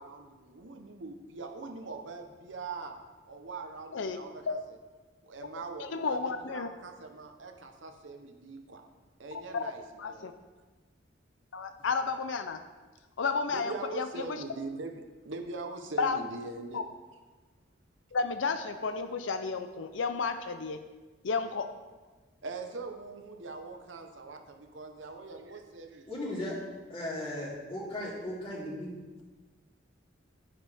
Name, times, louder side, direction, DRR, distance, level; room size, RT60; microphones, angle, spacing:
voice 1, 0.0-2.9 3.3-4.8 5.2-8.8 9.2-10.3 13.5-16.8 22.4-26.3, right 3 dB, 75° right, 4 dB, 1.0 m, -42 dB
voice 2, 5.8-6.7 10.0-10.3 11.5-12.6 13.2-14.4 16.0-16.2 16.7-16.8 18.1-20.8 21.2-21.7, left 4 dB, 80° left, 9 dB, 0.6 m, -32 dB
voice 3, 26.1-26.6 26.9-28.9, left 1 dB, 30° left, -6 dB, 3.0 m, -36 dB
10.0 x 8.7 x 3.5 m, 1.3 s
head